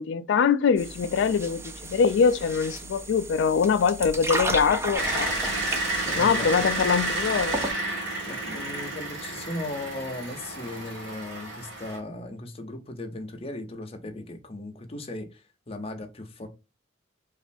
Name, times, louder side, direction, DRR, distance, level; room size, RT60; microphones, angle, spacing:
voice 1, 0.0-5.3 6.1-7.6, left 6 dB, 70° left, 0.3 m, -23 dB
sound 1, 0.8-7.7, right 1 dB, 15° right, 0.4 m, -34 dB
sound 2, 4.9-12.0, right 2 dB, 75° right, 1.4 m, -31 dB
voice 2, 6.0-6.9 8.3-16.5, left 2 dB, 30° left, 0.6 m, -37 dB
3.0 x 2.5 x 2.5 m
head